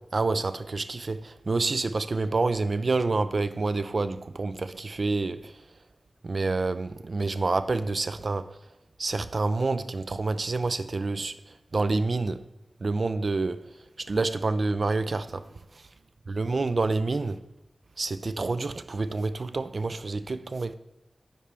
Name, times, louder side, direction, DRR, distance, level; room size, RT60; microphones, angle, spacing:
voice 1, 0.1-5.6 6.2-8.6 9.0-11.4 11.7-12.4 12.8-13.7 14.0-15.4 15.7-15.8 16.3-17.4 18.0-20.7, right 3 dB, 55° right, 0.3 m, -28 dB
10.0 x 4.3 x 3.4 m
wide cardioid pair, 95°, 0 cm